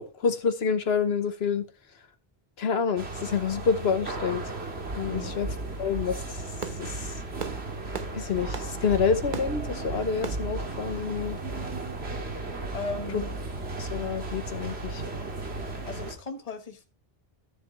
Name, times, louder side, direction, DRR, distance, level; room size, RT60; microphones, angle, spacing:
voice 1, 0.0-1.6 2.6-4.4 5.0-5.5 5.8-6.2 6.8-7.1 8.1-11.4 13.1-13.2 13.8-15.0, left 6 dB, 75° left, 1.2 m, -28 dB
sound 1, 3.0-16.1, right 2 dB, 85° right, 2.2 m, -35 dB
Fireworks, 6.3-11.9, right 6 dB, 55° right, 1.0 m, -41 dB
voice 2, 12.7-13.3 15.9-16.8, left 3 dB, 35° left, 1.3 m, -36 dB
13.5 x 7.5 x 3.1 m
omnidirectional pair, 1.1 m